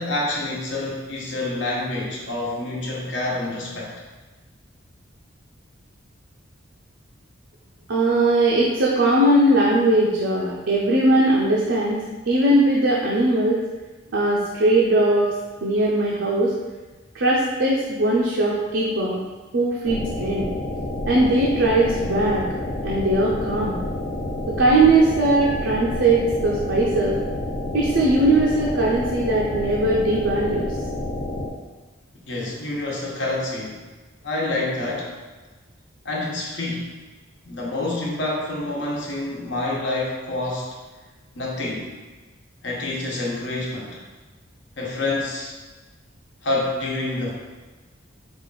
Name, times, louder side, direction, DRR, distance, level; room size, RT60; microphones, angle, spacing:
voice 1, 0.0-4.0 32.2-33.8 34.2-35.1 36.0-36.9 37.4-40.8 41.3-41.9 42.6-44.0 44.8-45.6 46.4-47.3, left 2 dB, 65° left, -4 dB, 1.0 m, -27 dB
voice 2, 7.9-12.0 12.3-13.6 14.1-15.3 15.6-16.5 17.1-19.2 19.5-20.5 21.1-22.5 22.8-23.8 24.6-27.2 27.7-30.7, right 2 dB, 70° right, -5 dB, 0.6 m, -19 dB
sound 1, 19.8-31.5, left 1 dB, 40° left, 0.5 m, -29 dB
4.9 x 2.5 x 3.9 m, 1.3 s
head